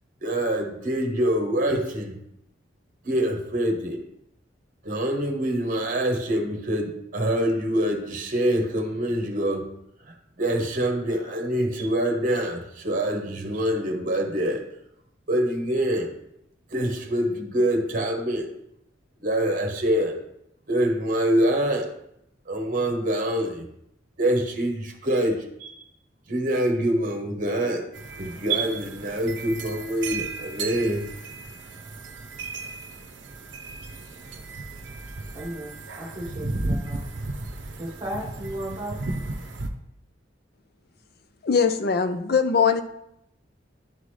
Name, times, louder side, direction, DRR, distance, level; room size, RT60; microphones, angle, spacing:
voice 1, 0.2-2.2 3.0-4.0 4.8-9.6 10.1-14.6 15.3-16.1 16.7-18.5 19.2-20.2 20.7-21.9 22.5-23.7 24.2-25.7 26.3-27.8 28.2-31.0, right 1 dB, 45° right, 4 dB, 1.1 m, -25 dB
sound 1, 27.9-39.7, right 2 dB, 70° right, 0.7 m, -35 dB
voice 2, 35.3-35.7 36.0-37.0 37.8-39.0, right 1 dB, 25° right, -2 dB, 1.4 m, -34 dB
voice 3, 41.4-42.8, left 6 dB, 55° left, 9 dB, 0.5 m, -21 dB
10.5 x 3.9 x 3.2 m, 0.78 s
head